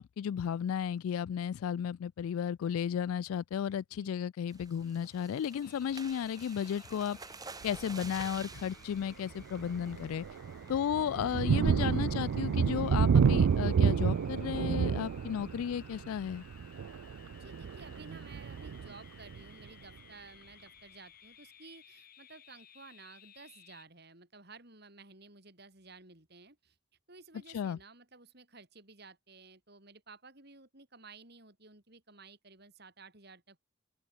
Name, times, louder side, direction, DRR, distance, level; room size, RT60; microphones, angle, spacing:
voice 1, 0.0-7.2 7.6-10.3 10.7-16.4 27.5-27.8, left 8 dB, 85° left, 0.3 m, -34 dB
voice 2, 3.9-4.2 10.6-10.8 17.3-26.8 27.1-33.6, right 3 dB, 50° right, 3.9 m, -54 dB
sound 1, 4.5-10.3 10.7-10.9 11.3-11.4 11.7-12.0, right 4 dB, 20° right, 1.3 m, -50 dB
sound 2, 5.6-23.8, left 8 dB, 45° left, 3.0 m, -58 dB
Thunder, 7.6-7.9 8.5-8.7 9.1-19.7, right 6 dB, 90° right, 0.4 m, -30 dB
open air
head